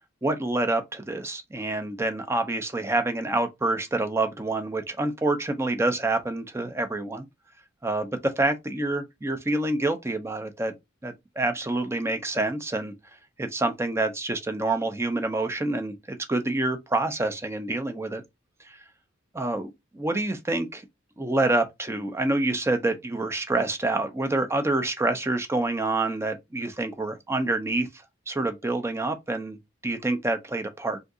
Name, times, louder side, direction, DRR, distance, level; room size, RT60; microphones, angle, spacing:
voice 1, 0.2-7.3 7.8-10.7 11.0-12.9 13.4-18.2 18.6-18.8 19.3-20.8 21.2-27.9 28.3-31.0, right 2 dB, 15° right, 0.5 m, -27 dB
2.7 x 2.5 x 3.6 m
head